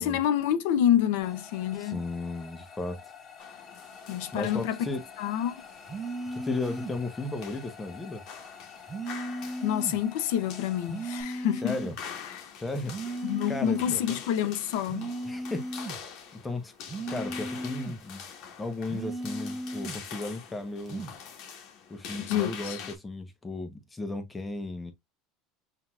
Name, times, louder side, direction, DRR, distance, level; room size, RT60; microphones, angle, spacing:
voice 1, 0.0-2.0 4.1-4.8 5.2-5.6 9.6-11.8 12.3-12.4 13.2-15.1 22.2-22.8, left 10 dB, 80° left, 0.6 m, -28 dB
sound 1, 1.2-11.2, left 6 dB, 30° left, 1.3 m, -49 dB
voice 2, 1.8-3.0 4.3-5.0 6.3-8.2 11.6-11.9 12.6-12.9 13.5-14.2 15.2-16.0 16.4-16.7 17.1-18.2 18.6-21.1 21.9-24.9, left 2 dB, 15° left, 1.0 m, -35 dB
sound 2, 3.4-23.0, left 7 dB, 60° left, 1.3 m, -45 dB
sound 3, 5.9-7.0 8.9-10.0 10.9-12.0 12.9-14.0 14.9-16.0 16.9-18.0 18.9-20.0 20.9-21.2, right 1 dB, 20° right, 0.7 m, -36 dB
5.9 x 2.8 x 2.3 m
supercardioid pair, 135°, 0 cm